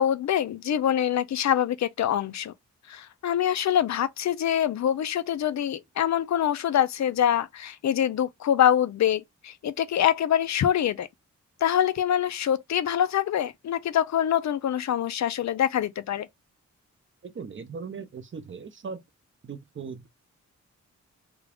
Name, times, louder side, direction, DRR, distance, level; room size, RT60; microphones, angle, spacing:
voice 1, 0.0-2.5 2.9-11.1 11.6-16.3, left 10 dB, 70° left, 0.5 m, -25 dB
voice 2, 17.2-19.0 19.4-20.1, right 5 dB, 40° right, 0.6 m, -38 dB
3.5 x 2.4 x 3.4 m
wide cardioid pair, 120°, 30 cm